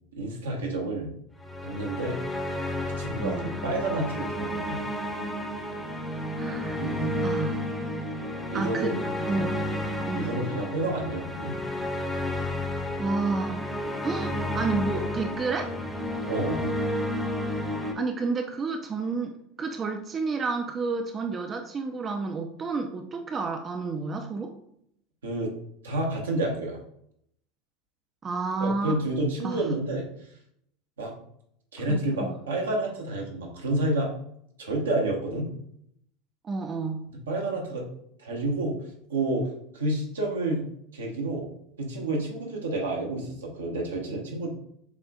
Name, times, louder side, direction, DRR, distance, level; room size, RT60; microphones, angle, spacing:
voice 1, 0.1-1.1 1.6-2.2 3.0-4.9 6.8-7.1 8.5-9.0 10.1-11.5 14.3-14.4 16.3-16.6 25.2-25.5 25.8-26.8 28.6-30.1 31.0-31.1 31.7-34.1 34.6-35.5 37.1-37.9 38.2-38.8 39.1-39.5 39.7-40.7 40.9-41.5 41.8-44.5, right 2 dB, 80° right, 0 dB, 1.0 m, -29 dB
sound 1, 1.4-17.9, left 1 dB, 5° left, 0.7 m, -31 dB
voice 2, 3.2-3.5 6.4-6.8 7.2-7.7 8.5-8.9 9.3-9.6 10.1-10.4 13.0-13.7 14.0-15.7 17.9-24.5 28.2-29.0 29.4-29.6 31.9-32.4 36.4-37.1, right 4 dB, 30° right, 4 dB, 0.4 m, -30 dB
7.0 x 2.4 x 2.4 m, 0.71 s
figure-of-eight pair, 80°, 0 cm